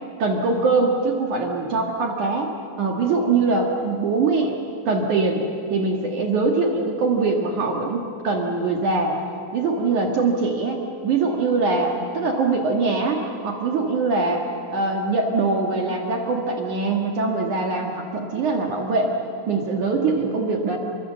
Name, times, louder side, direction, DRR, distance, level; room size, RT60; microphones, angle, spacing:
voice 1, 0.2-2.5 2.8-4.5 4.9-5.4 5.7-9.2 9.5-19.2 19.5-20.8, right 3 dB, 60° right, 1 dB, 2.2 m, -22 dB
28.0 x 24.0 x 7.5 m, 2.6 s
omnidirectional pair, 5.8 m